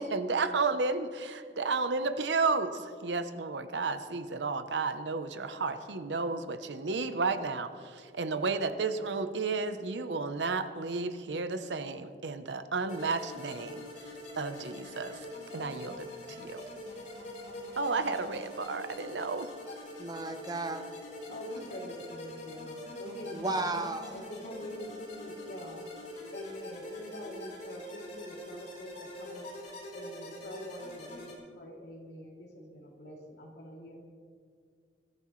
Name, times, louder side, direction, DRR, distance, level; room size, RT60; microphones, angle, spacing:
voice 1, 0.0-13.8 14.4-15.3 15.5-16.6 17.8-19.5, right 4 dB, 80° right, 10 dB, 0.8 m, -32 dB
sound 1, 12.9-31.3, left 1 dB, 45° left, 4.1 m, -44 dB
voice 2, 20.0-20.8 23.3-24.2, right 2 dB, 25° right, 7 dB, 0.9 m, -33 dB
voice 3, 21.3-23.7 24.1-25.9 26.3-29.5 29.9-34.0, equal, 70° left, -2 dB, 2.9 m, -45 dB
21.0 x 13.5 x 3.2 m, 2.1 s
head